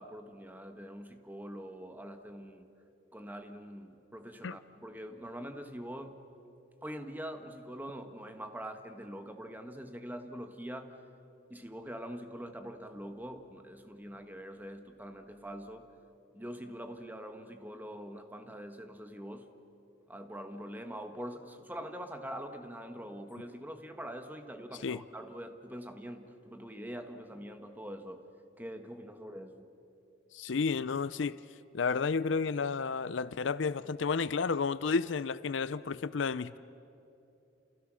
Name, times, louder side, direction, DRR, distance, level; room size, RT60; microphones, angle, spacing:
voice 1, 0.0-2.7 3.1-6.2 6.8-10.9 11.5-15.9 16.3-19.5 20.1-28.3 28.6-29.7, equal, 10° right, 1.5 m, -44 dB
voice 2, 30.3-31.4 31.7-36.6, left 5 dB, 70° left, 0.5 m, -31 dB
29.5 x 28.5 x 6.3 m
head